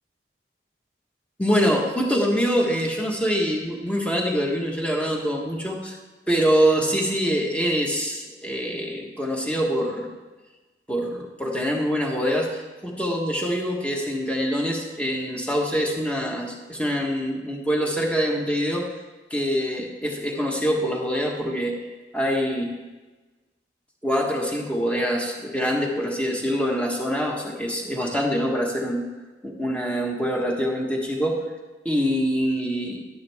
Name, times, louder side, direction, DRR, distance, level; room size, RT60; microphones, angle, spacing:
voice 1, 1.4-6.0 6.3-10.1 10.9-18.9 19.3-21.7 22.1-22.7 24.0-29.0 29.4-31.4 31.8-33.0, equal, 5° left, 0 dB, 1.5 m, -24 dB
12.0 x 10.0 x 3.6 m, 1.2 s
head